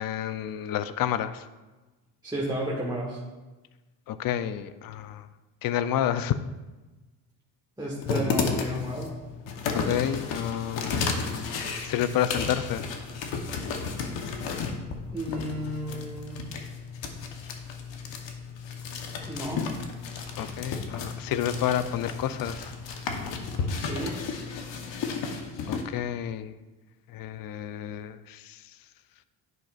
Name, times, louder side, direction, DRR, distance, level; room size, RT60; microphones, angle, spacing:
voice 1, 0.0-1.4 4.1-5.3 5.6-6.4 9.7-12.8 20.4-22.7 25.7-26.5 27.1-28.6, left 10 dB, 50° left, 13 dB, 0.5 m, -30 dB
voice 2, 2.2-3.2 7.8-9.1 15.1-16.5 19.2-19.6 23.7-24.2, equal, 10° right, -5 dB, 1.4 m, -32 dB
sound 1, 8.0-25.8, left 5 dB, 70° left, 1.1 m, -33 dB
11.0 x 5.8 x 2.4 m, 1.2 s
supercardioid pair, 85°, 45 cm